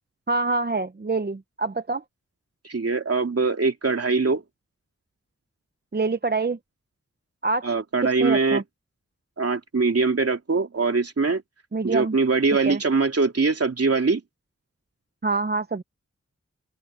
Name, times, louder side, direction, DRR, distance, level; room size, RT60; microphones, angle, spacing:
voice 1, 0.3-2.0 5.9-6.6 7.4-7.7 8.2-8.6 11.7-12.2 12.6-12.8 15.2-15.8, right 3 dB, 35° right, 0.9 m, -25 dB
voice 2, 2.6-4.4 7.6-8.6 9.4-11.4 11.8-14.2, right 4 dB, 55° right, 2.8 m, -22 dB
open air
wide cardioid pair, 75°, 29 cm